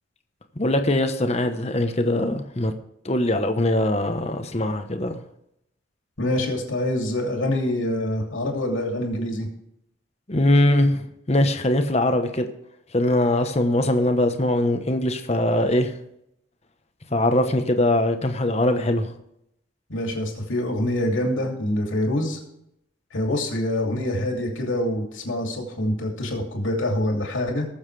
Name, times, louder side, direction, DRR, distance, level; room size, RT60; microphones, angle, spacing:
voice 1, 0.6-2.7 3.0-5.1 10.3-12.5 12.9-15.9 17.1-19.1, left 1 dB, 30° left, 7 dB, 1.0 m, -21 dB
voice 2, 6.2-9.5 19.9-22.4 23.1-27.7, left 1 dB, 75° left, 1 dB, 2.8 m, -25 dB
20.0 x 7.3 x 3.3 m, 0.79 s
head